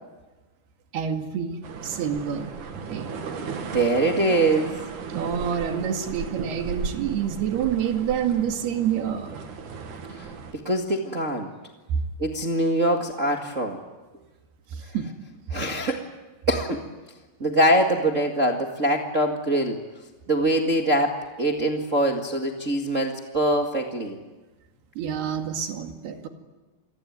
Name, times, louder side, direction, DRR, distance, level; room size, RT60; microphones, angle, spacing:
voice 1, 0.9-2.5 2.9-3.1 5.1-9.3 14.7-15.1 25.0-26.3, right 8 dB, 85° right, 5 dB, 4.2 m, -27 dB
sound 1, 1.6-10.5, right 5 dB, 55° right, 3.3 m, -36 dB
voice 2, 3.5-4.7 10.2-10.3 10.5-11.5 12.2-13.8 15.5-16.0 16.5-16.8 17.4-19.8 20.3-24.2, right 1 dB, 30° right, 2 dB, 1.4 m, -23 dB
28.5 x 21.5 x 9.6 m, 1.2 s
omnidirectional pair, 4.4 m